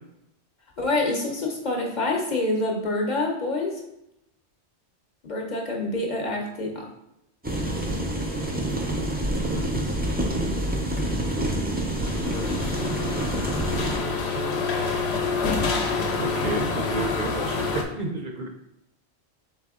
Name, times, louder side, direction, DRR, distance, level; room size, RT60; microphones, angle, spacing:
voice 1, 0.8-3.8 5.2-6.9 12.2-12.5 12.8-12.9, left 2 dB, 45° left, -1 dB, 0.8 m, -27 dB
sound 1, 7.4-14.0, right 1 dB, 15° right, 0.4 m, -27 dB
voice 2, 9.2-9.8 13.8-14.7 16.2-18.5, right 2 dB, 55° right, 2 dB, 0.7 m, -32 dB
sound 2, 11.9-17.8, left 4 dB, 75° left, 0.9 m, -27 dB
4.0 x 3.3 x 3.6 m, 0.82 s
omnidirectional pair, 1.1 m